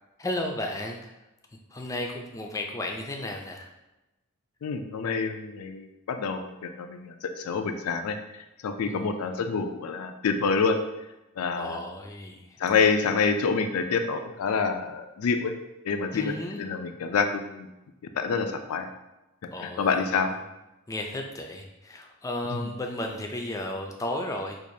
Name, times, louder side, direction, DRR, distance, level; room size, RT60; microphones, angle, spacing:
voice 1, 0.2-1.2 1.7-3.7 8.8-9.3 11.5-12.6 16.1-16.6 19.5-20.0 20.3-20.4 20.9-24.6, left 1 dB, 15° left, 2 dB, 0.4 m, -34 dB
voice 2, 4.6-8.2 8.6-10.8 11.4-11.8 12.6-15.5 15.8-17.7 18.1-18.9 19.8-20.3, left 5 dB, 85° left, 7 dB, 0.4 m, -27 dB
4.6 x 2.5 x 2.7 m, 0.98 s
head